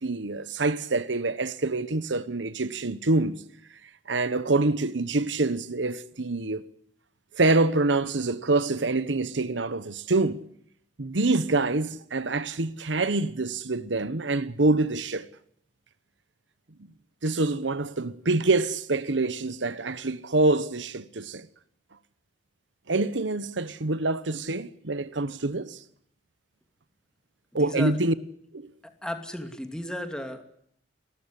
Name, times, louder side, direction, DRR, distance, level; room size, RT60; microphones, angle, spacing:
voice 1, 0.0-3.4 4.1-6.6 7.3-10.4 11.0-15.3 17.2-21.5 22.9-25.8 27.5-28.1 28.5-28.7, right 2 dB, 80° right, 1.1 m, -26 dB
voice 2, 27.5-27.9 28.8-30.4, equal, 5° left, 2.5 m, -34 dB
30.0 x 14.0 x 9.9 m
head